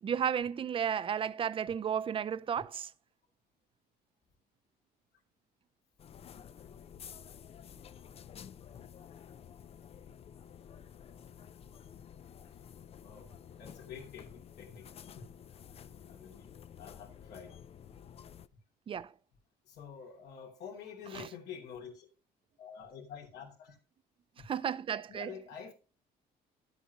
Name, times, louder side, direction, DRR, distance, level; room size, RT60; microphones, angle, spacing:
voice 1, 0.0-2.9 18.9-19.1 21.1-21.3 24.4-25.3, right 8 dB, 30° right, 0.5 m, -33 dB
sound 1, 6.0-18.5, left 8 dB, 35° left, 0.4 m, -51 dB
voice 2, 13.0-13.3 13.6-14.9 15.1-15.3 15.8-16.5 16.8-17.6 19.6-22.1 22.6-23.8 25.1-25.7, left 7 dB, 75° left, 2.8 m, -48 dB
10.5 x 8.1 x 2.9 m
cardioid pair, 110°, 17 cm